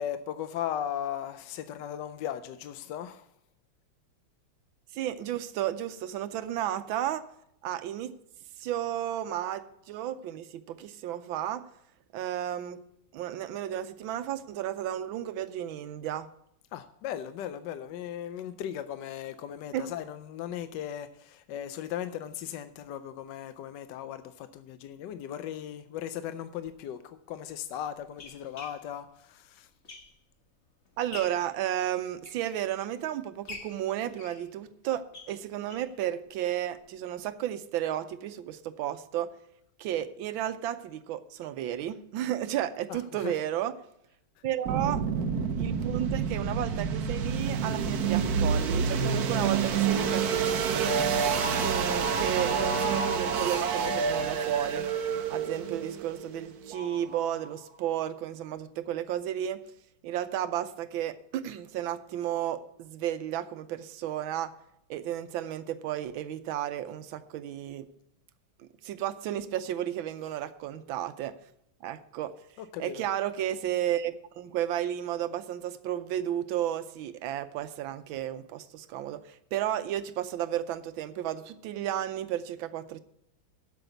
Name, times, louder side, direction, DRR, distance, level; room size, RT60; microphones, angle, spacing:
voice 1, 0.0-3.2 16.7-29.7 42.9-43.4 72.6-73.0, left 10 dB, 70° left, 11 dB, 1.1 m, -37 dB
voice 2, 4.9-7.2 7.6-8.1 8.6-11.6 12.1-12.8 13.1-16.3 19.7-19.9 31.0-39.3 39.8-43.7 44.4-45.0 45.6-51.0 51.6-54.9 55.3-59.6 60.0-64.5 64.9-67.9 68.6-71.3 71.8-72.3 72.8-83.0, right 11 dB, 80° right, 12 dB, 1.4 m, -33 dB
sound 1, 26.6-26.7 27.5-30.4 30.8-31.5 32.0-33.0 33.4-36.0 36.3-36.4 36.7-36.8 37.2-37.3, left 3 dB, 40° left, 1.4 m, -47 dB
sound 2, 44.7-57.5, right 6 dB, 60° right, 1.1 m, -28 dB
8.1 x 7.0 x 7.9 m, 0.75 s
omnidirectional pair, 2.2 m